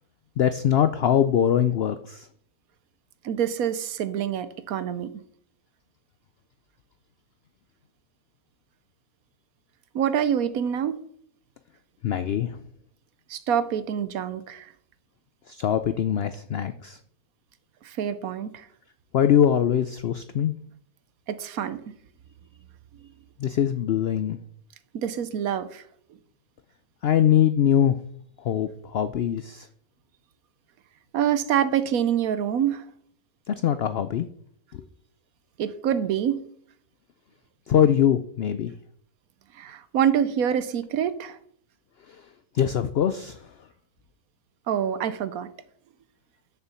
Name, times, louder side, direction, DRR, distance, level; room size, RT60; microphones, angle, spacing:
voice 1, 0.4-2.3 12.0-12.6 15.5-17.0 19.1-20.6 23.4-24.4 27.0-28.0 28.4-29.7 33.5-34.3 34.7-34.8 37.7-38.7 42.1-42.2 42.5-43.5, left 9 dB, 75° left, 11 dB, 0.5 m, -22 dB
voice 2, 3.2-5.1 9.9-11.0 13.3-14.7 17.8-18.7 21.3-21.8 24.9-25.8 31.1-32.8 35.6-36.5 39.5-41.4 44.7-45.5, right 9 dB, 70° right, 14 dB, 1.1 m, -26 dB
6.9 x 6.7 x 7.0 m, 0.64 s
omnidirectional pair, 1.6 m